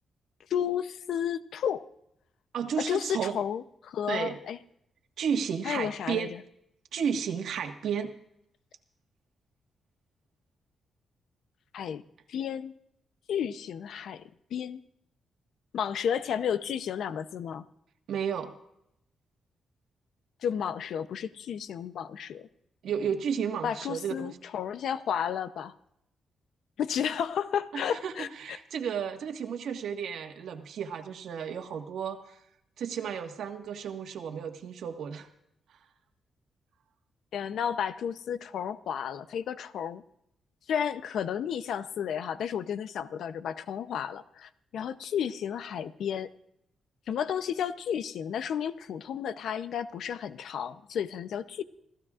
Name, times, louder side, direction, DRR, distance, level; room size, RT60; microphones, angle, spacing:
voice 1, 0.5-1.9 2.8-4.6 5.6-6.3 11.7-12.0 12.3-12.7 13.3-14.2 14.5-14.8 15.7-17.6 20.4-22.5 23.6-25.7 26.8-28.6 37.3-40.0 40.7-46.3 47.1-51.6, left 8 dB, 75° left, 12 dB, 0.7 m, -32 dB
voice 2, 2.5-3.4 4.1-4.4 5.2-6.3 6.9-8.1 18.1-18.5 22.8-24.4 27.7-32.4 32.8-35.3, right 7 dB, 80° right, 5 dB, 1.5 m, -33 dB
28.5 x 15.0 x 2.5 m, 0.79 s
cardioid pair, 140°, 0 cm